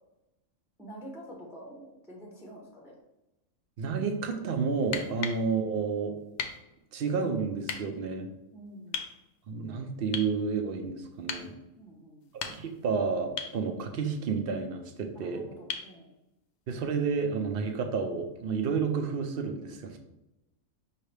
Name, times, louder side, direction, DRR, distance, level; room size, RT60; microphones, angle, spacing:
voice 1, 0.8-3.0 8.5-9.1 11.8-12.3 15.1-16.1, equal, 5° right, -2 dB, 0.7 m, -47 dB
voice 2, 3.8-6.1 6.9-8.3 9.5-11.5 12.3-15.4 16.7-20.0, right 5 dB, 55° right, 5 dB, 0.7 m, -30 dB
sound 1, 4.8-5.4 6.4-6.6 7.6-7.8 8.9-9.1 10.1-10.4 11.3-11.5 12.2-12.8 13.4-13.6 15.7-15.9 17.8-17.9, left 6 dB, 65° left, 0.8 m, -36 dB
5.7 x 2.8 x 3.3 m, 0.93 s
omnidirectional pair, 1.4 m